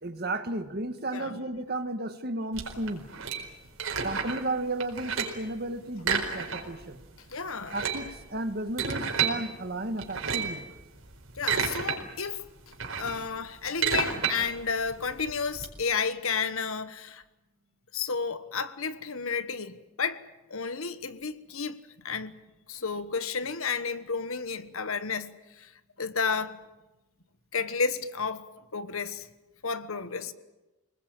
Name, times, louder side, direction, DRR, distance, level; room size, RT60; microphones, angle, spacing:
voice 1, 0.0-3.0 4.0-7.0 7.7-10.7, right 2 dB, 45° right, 1.5 m, -33 dB
sound 1, 2.5-4.5 4.8-5.5 6.0-6.9 7.1-7.2 7.6-9.4 10.0-10.6 11.1-12.0 12.3-15.7, right 6 dB, 65° right, 4.5 m, -30 dB
voice 2, 7.3-7.9 11.3-12.5 13.0-17.2 17.9-20.2 20.5-22.3 22.7-25.7 26.0-26.6 27.5-28.4 28.7-29.3 29.6-30.3, left 5 dB, 70° left, 1.3 m, -32 dB
27.0 x 20.0 x 9.0 m
head